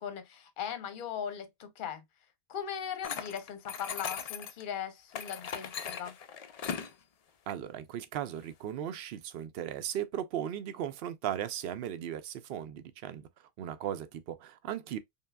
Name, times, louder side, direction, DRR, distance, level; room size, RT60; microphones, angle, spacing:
voice 1, 0.0-2.0 2.5-6.2, left 8 dB, 50° left, 0.8 m, -39 dB
sound 1, 3.0-4.6 5.1-6.9, left 7 dB, 70° left, 0.3 m, -38 dB
voice 2, 7.5-15.0, right 10 dB, 65° right, 0.7 m, -37 dB
5.4 x 2.2 x 2.2 m
omnidirectional pair, 1.2 m